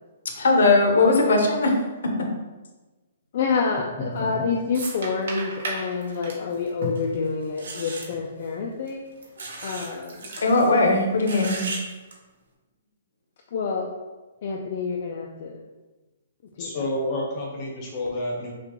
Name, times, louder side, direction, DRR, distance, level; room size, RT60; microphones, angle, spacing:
voice 1, 0.3-1.7 2.0-2.1 10.4-11.6, left 3 dB, 80° left, 2 dB, 0.8 m, -19 dB
voice 2, 3.3-9.0 9.6-10.3 13.5-13.9 14.4-15.6 16.6-16.8, left 5 dB, 40° left, 0 dB, 0.4 m, -28 dB
sound 1, 4.1-4.4 4.7-7.7 8.0-8.2 8.9-9.2 9.6-10.7, right 2 dB, 60° right, 1.0 m, -35 dB
sound 2, 6.9-7.1 7.6-8.1 9.4-9.9 10.2-10.3 11.2-11.8 12.1-12.2, right 3 dB, 90° right, 0.9 m, -35 dB
voice 3, 16.6-18.5, left 1 dB, 20° left, -2 dB, 0.7 m, -29 dB
5.9 x 2.3 x 3.0 m, 1.2 s
hypercardioid pair, 180°, 0 cm